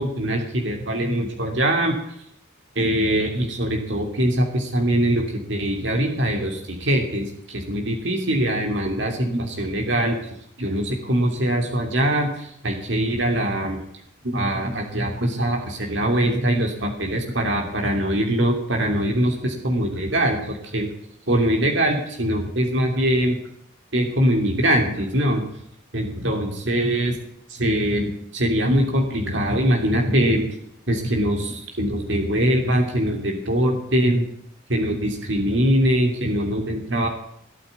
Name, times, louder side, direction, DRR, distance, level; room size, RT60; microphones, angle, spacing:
voice 1, 0.0-2.1 2.7-13.8 14.2-20.9 21.3-23.4 23.9-25.4 25.9-27.2 27.5-30.5 30.9-34.2 34.7-37.1, right 1 dB, 65° right, 2 dB, 2.9 m, -22 dB
17.0 x 9.1 x 8.2 m, 0.73 s
head